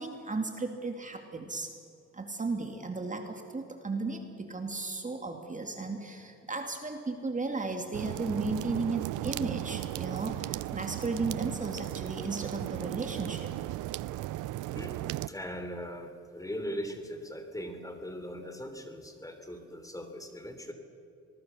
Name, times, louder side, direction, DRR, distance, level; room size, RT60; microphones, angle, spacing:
voice 1, 0.0-1.7 2.1-13.5, right 3 dB, 25° right, 4 dB, 2.3 m, -35 dB
sound 1, 7.9-15.3, right 15 dB, 85° right, 0.6 m, -36 dB
voice 2, 14.7-20.7, equal, 10° left, 6 dB, 3.2 m, -40 dB
25.5 x 20.5 x 6.9 m, 2.5 s
cardioid pair, 90°, 30 cm